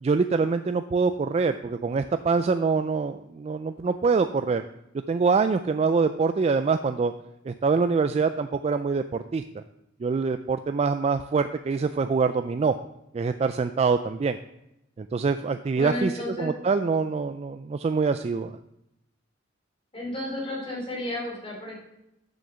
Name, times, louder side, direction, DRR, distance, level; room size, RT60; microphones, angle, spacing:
voice 1, 0.0-4.7 5.1-7.1 7.4-9.6 10.0-12.7 13.1-14.4 15.0-18.6, right 4 dB, 35° right, 9 dB, 0.3 m, -25 dB
voice 2, 15.7-16.5 19.9-21.8, left 1 dB, 30° left, -2 dB, 2.9 m, -32 dB
6.7 x 6.4 x 6.8 m, 0.85 s
head